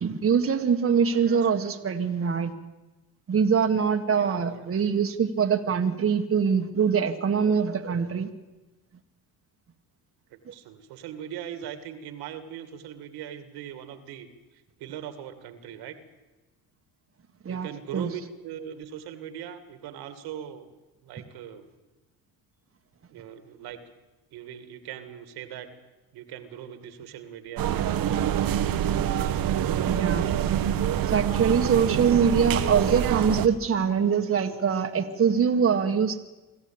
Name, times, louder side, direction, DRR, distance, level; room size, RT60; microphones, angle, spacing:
voice 1, 0.0-2.5 3.3-8.3 10.5-10.6 17.5-17.7 17.9-18.1 29.9-30.3 31.0-36.2, right 6 dB, 35° right, 5 dB, 1.8 m, -23 dB
voice 2, 1.1-1.8 4.2-4.7 10.3-14.3 14.8-16.0 17.5-20.7 21.0-21.7 23.1-23.8 24.3-25.7 26.1-27.8 28.4-28.9, right 10 dB, 80° right, 9 dB, 2.4 m, -40 dB
sound 1, 27.6-33.5, right 10 dB, 60° right, 1.4 m, -26 dB
25.5 x 14.0 x 8.9 m, 1.1 s
supercardioid pair, 85°, 38 cm